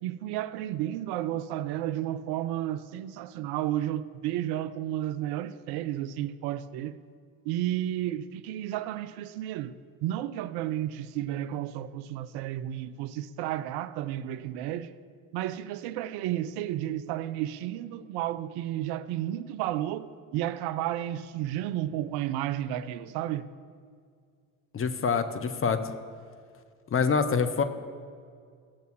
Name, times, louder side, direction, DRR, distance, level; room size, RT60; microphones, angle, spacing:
voice 1, 0.0-7.0 7.4-9.8 10.0-14.9 15.3-23.5, right 12 dB, 60° right, 0.5 m, -32 dB
voice 2, 24.7-25.9 26.9-27.6, left 5 dB, 30° left, 0.8 m, -26 dB
14.0 x 6.6 x 3.2 m
hypercardioid pair, 60°, 44 cm